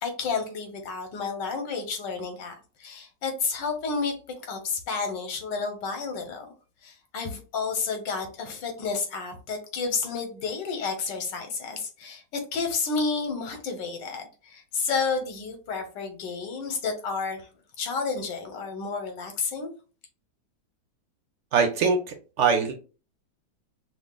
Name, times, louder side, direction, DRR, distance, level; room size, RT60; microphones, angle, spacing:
voice 1, 0.0-4.2 4.4-6.4 6.8-17.5 17.8-19.7, left 4 dB, 85° left, 1.6 m, -31 dB
voice 2, 21.5-22.7, right 5 dB, 65° right, 0.7 m, -23 dB
5.7 x 2.4 x 2.3 m
omnidirectional pair, 1.9 m